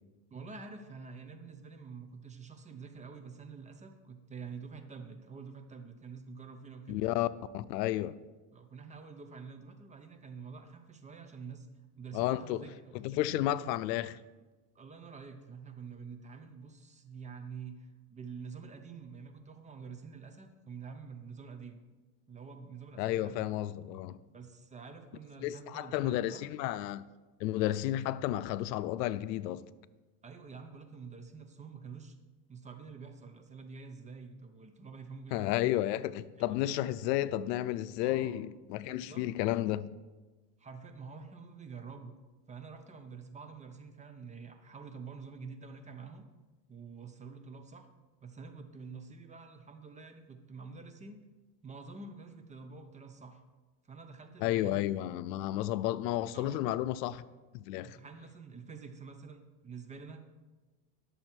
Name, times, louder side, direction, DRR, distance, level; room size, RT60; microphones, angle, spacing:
voice 1, 0.3-7.0 8.5-11.7 12.0-13.2 14.7-21.8 22.3-23.5 24.3-26.5 30.2-32.2 32.5-35.7 36.4-36.6 38.0-38.4 38.9-39.3 40.6-42.2 42.5-46.2 46.7-47.9 48.2-51.2 51.6-53.4 53.8-54.8 56.3-56.7 57.8-60.2, right 5 dB, 15° right, 0.6 m, -47 dB
voice 2, 6.9-7.3 7.5-8.2 12.1-12.6 12.9-14.2 23.0-24.2 25.4-27.0 27.4-29.6 35.3-39.9 54.4-57.2 57.5-58.0, left 14 dB, 90° left, 0.6 m, -32 dB
10.5 x 7.0 x 4.4 m
supercardioid pair, 130°, 48 cm